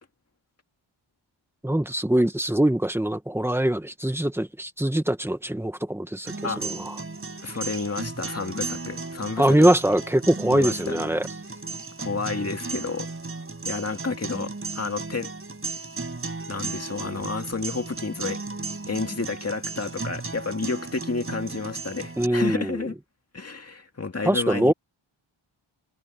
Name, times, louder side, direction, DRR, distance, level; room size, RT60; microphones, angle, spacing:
voice 1, 1.6-6.9 9.4-11.2 22.2-22.8 24.2-24.7, right 1 dB, 5° right, 1.5 m, -23 dB
sound 1, 6.3-22.3, right 3 dB, 25° right, 5.0 m, -35 dB
voice 2, 7.4-9.7 10.5-11.0 12.0-13.1 13.6-15.3 16.5-18.4 18.9-22.9 23.3-24.7, left 4 dB, 30° left, 2.3 m, -30 dB
wide cardioid pair, 130°, 49 cm